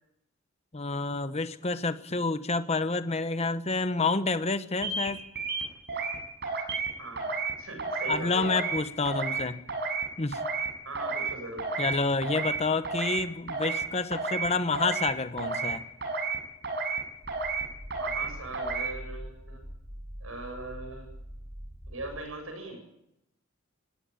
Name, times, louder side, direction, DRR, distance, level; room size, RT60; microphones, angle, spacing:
voice 1, 0.7-5.2 8.1-9.6 10.2-10.4 11.8-15.8, left 3 dB, 30° left, 11 dB, 1.1 m, -29 dB
sound 1, 4.8-5.1 5.3-6.2 6.4-6.9 7.2-7.5 7.8-8.1 8.4-8.8 9.0-9.4 9.7-10.0 10.3-10.7 10.9-11.3 11.6-11.9 12.2-12.6 12.8-13.2 13.5-13.8 14.1-14.5 14.7-15.1 15.4-15.7 16.0-16.4 16.6-17.0 17.3-17.6 17.9-18.3 18.5-18.9, right 4 dB, 55° right, 7.3 m, -31 dB
voice 2, 7.0-7.3 7.6-8.5 10.8-11.7 17.9-19.6 20.2-21.1 21.9-22.8, right 2 dB, 85° right, 5 dB, 8.0 m, -40 dB
sound 2, 17.2-22.2, equal, 20° right, 5.3 m, -44 dB
19.5 x 17.0 x 8.9 m, 0.83 s
head